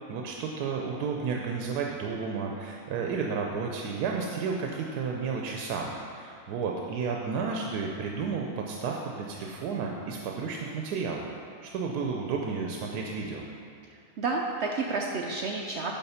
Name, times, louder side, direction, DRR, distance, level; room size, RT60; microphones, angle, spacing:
voice 1, 0.1-11.2 11.6-13.4, right 5 dB, 85° right, 0 dB, 1.2 m, -32 dB
voice 2, 13.9-15.9, right 3 dB, 65° right, 0 dB, 0.7 m, -31 dB
9.9 x 3.6 x 5.5 m, 2.4 s
omnidirectional pair, 1.6 m